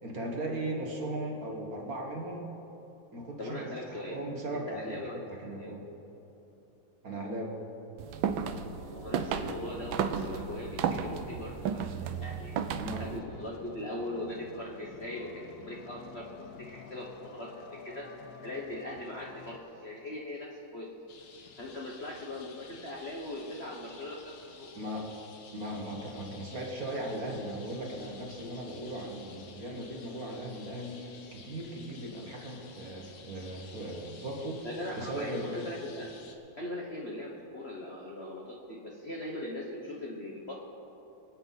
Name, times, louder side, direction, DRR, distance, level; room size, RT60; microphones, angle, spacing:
voice 1, 0.0-2.5 3.1-5.9 7.0-7.6 12.7-13.1 24.7-25.1 25.5-34.7 35.0-35.5, right 1 dB, 45° right, 0 dB, 1.8 m, -38 dB
voice 2, 3.4-4.2 4.5-5.3 5.6-5.7 8.8-12.6 13.0-18.1 18.4-20.9 21.6-24.7 34.6-36.1 36.6-40.5, left 1 dB, 40° left, -3 dB, 1.2 m, -40 dB
sound 1, 8.0-13.2, right 7 dB, 75° right, 1.4 m, -33 dB
sound 2, 8.9-19.6, left 6 dB, 60° left, 1.2 m, -50 dB
sound 3, 21.1-36.3, left 5 dB, 80° left, 2.0 m, -53 dB
25.0 x 8.8 x 4.1 m, 3.0 s
omnidirectional pair, 2.3 m